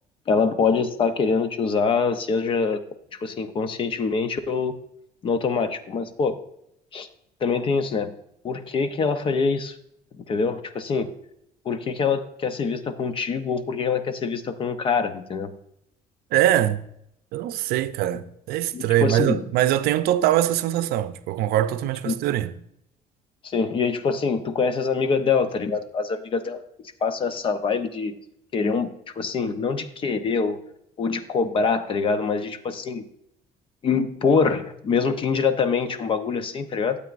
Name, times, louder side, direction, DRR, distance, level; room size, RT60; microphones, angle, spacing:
voice 1, 0.3-2.8 3.2-4.7 5.2-6.4 6.9-7.1 7.4-8.1 8.4-9.7 10.2-11.1 11.7-15.5 18.7-19.4 22.1-22.2 23.4-26.6 27.0-28.2 28.5-30.6 31.0-33.0 33.8-37.0, left 5 dB, 35° left, 0.7 m, -24 dB
voice 2, 16.3-16.8 17.3-22.5, right 12 dB, 80° right, 0.5 m, -22 dB
12.5 x 8.2 x 2.5 m
cardioid pair, 165°, 16 cm